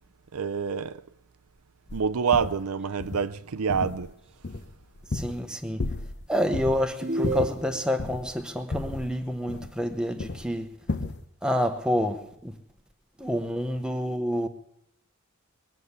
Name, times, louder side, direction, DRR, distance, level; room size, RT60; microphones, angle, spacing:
voice 1, 0.3-1.0 1.9-4.1, right 6 dB, 80° right, 0.6 m, -27 dB
sound 1, 1.9-2.0 2.3-2.6 3.0-3.3 3.7-4.1 4.4-5.5 5.8-6.3 6.5-6.8 7.2-8.3 8.7-9.9 10.2-10.5 10.9-11.2, left 2 dB, 50° left, 0.8 m, -33 dB
voice 2, 5.1-5.9 6.3-10.7 11.4-12.6 13.2-14.5, equal, 5° right, 1.0 m, -28 dB
sound 2, 7.0-8.1, right 2 dB, 30° right, 0.7 m, -30 dB
21.5 x 7.2 x 8.2 m
head